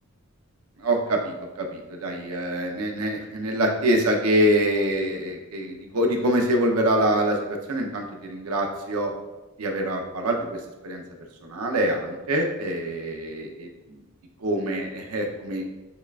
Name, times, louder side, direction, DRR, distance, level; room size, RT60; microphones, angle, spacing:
voice 1, 0.8-9.1 9.6-11.0 11.4-14.0 14.4-15.7, right 1 dB, 85° right, 2 dB, 0.6 m, -25 dB
6.8 x 2.4 x 2.3 m, 1.1 s
head